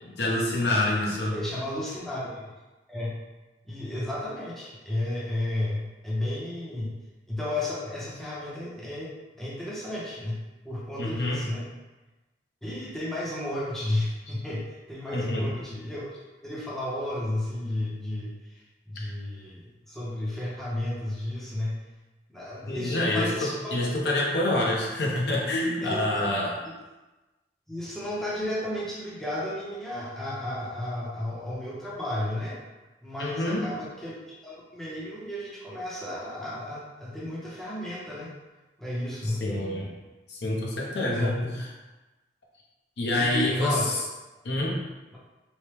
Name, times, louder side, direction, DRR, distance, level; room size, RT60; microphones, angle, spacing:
voice 1, 0.0-1.3 11.0-11.4 15.1-15.4 22.7-26.5 33.2-33.7 39.2-39.9 40.3-41.5 43.0-43.8 44.4-44.8, left 1 dB, 70° left, -3 dB, 0.6 m, -27 dB
voice 2, 1.3-2.5 2.9-3.1 3.6-7.0 7.3-9.1 9.4-10.4 10.6-11.7 12.6-16.1 16.4-21.8 22.3-23.8 25.8-26.3 27.7-32.6 33.0-34.2 34.4-38.3 38.8-39.4 41.1-41.4 43.1-43.9, left 1 dB, ahead, -8 dB, 0.5 m, -33 dB
3.0 x 2.0 x 3.1 m, 1.1 s
head